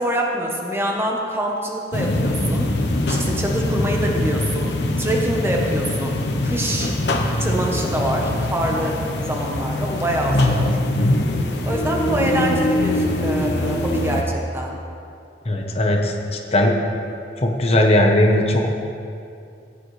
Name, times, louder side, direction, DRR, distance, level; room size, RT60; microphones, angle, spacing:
voice 1, 0.0-2.7 3.0-7.0 7.4-10.8 11.6-14.8, right 1 dB, 15° right, -1 dB, 1.0 m, -25 dB
sound 1, 1.9-14.2, left 1 dB, 80° left, 0.9 m, -22 dB
voice 2, 15.5-16.7 17.4-18.7, left 1 dB, 35° left, 2 dB, 0.9 m, -18 dB
15.0 x 8.5 x 3.2 m, 2.5 s
head